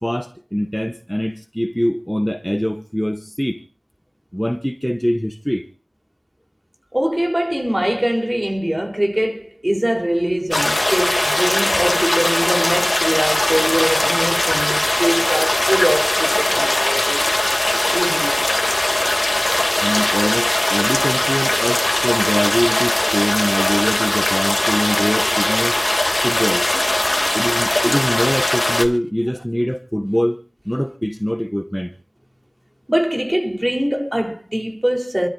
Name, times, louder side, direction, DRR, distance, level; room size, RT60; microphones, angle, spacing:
voice 1, 0.0-3.6 4.3-5.7 19.8-25.8 26.2-26.7 27.3-30.4 30.6-31.9, equal, 5° left, 1.0 m, -23 dB
voice 2, 6.9-17.2 17.9-18.3 19.5-19.7 27.2-27.4 32.9-35.3, equal, 30° right, 3.9 m, -22 dB
sound 1, 10.5-28.9, left 1 dB, 35° left, 2.7 m, -19 dB
28.5 x 13.0 x 2.7 m
wide cardioid pair, 45°, 0 cm